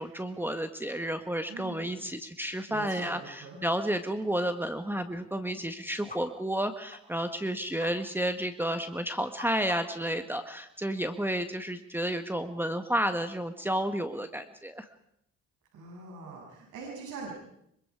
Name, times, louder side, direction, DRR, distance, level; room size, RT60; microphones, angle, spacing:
voice 1, 0.0-14.9, right 1 dB, 5° right, 8 dB, 1.6 m, -31 dB
voice 2, 1.5-2.0 2.7-3.6 15.7-17.3, right 4 dB, 85° right, -2 dB, 7.4 m, -43 dB
sound 1, 6.1-6.2 6.5-6.6 6.9-7.0 7.4-7.5 7.8-7.9 8.2-8.3 8.6-8.7 9.0-10.1, left 4 dB, 25° left, 5.0 m, -47 dB
25.5 x 24.5 x 4.9 m, 0.76 s
cardioid pair, 90°, 30 cm